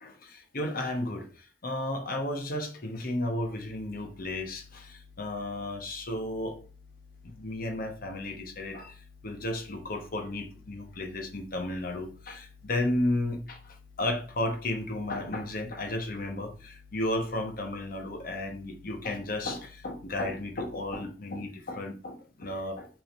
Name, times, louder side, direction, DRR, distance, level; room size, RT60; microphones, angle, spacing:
voice 1, 0.5-1.3 1.6-4.9 5.2-6.6 7.4-8.9 9.2-13.6 14.0-22.9, left 1 dB, 55° left, 5 dB, 1.0 m, -33 dB
sound 1, 3.4-20.9, left 4 dB, 70° left, 1.7 m, -54 dB
5.6 x 3.6 x 5.1 m, 0.36 s
head